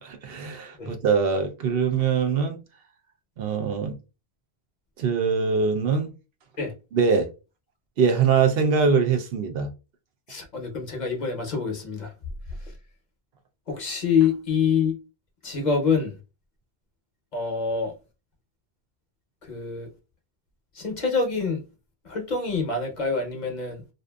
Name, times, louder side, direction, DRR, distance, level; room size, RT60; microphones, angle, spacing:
voice 1, 0.0-2.6 3.4-4.0 5.0-6.1 6.9-7.3 8.0-9.7, right 5 dB, 70° right, 0.8 m, -23 dB
voice 2, 10.3-12.1 13.7-15.0 15.4-16.2 17.3-17.9 19.5-19.9 20.7-21.7 22.0-23.8, left 5 dB, 50° left, 0.7 m, -26 dB
2.7 x 2.4 x 2.2 m
omnidirectional pair, 1.1 m